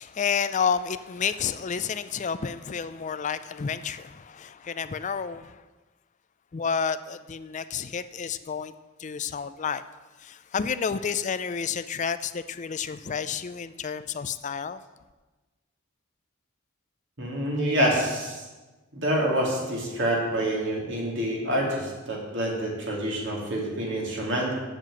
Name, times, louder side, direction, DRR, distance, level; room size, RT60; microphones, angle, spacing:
voice 1, 0.0-5.6 6.5-8.7 9.0-9.8 10.2-14.8, left 6 dB, 35° left, 13 dB, 0.4 m, -30 dB
voice 2, 17.2-18.4 18.9-24.5, right 1 dB, 60° right, -2 dB, 2.8 m, -27 dB
7.6 x 7.4 x 7.8 m, 1.2 s
head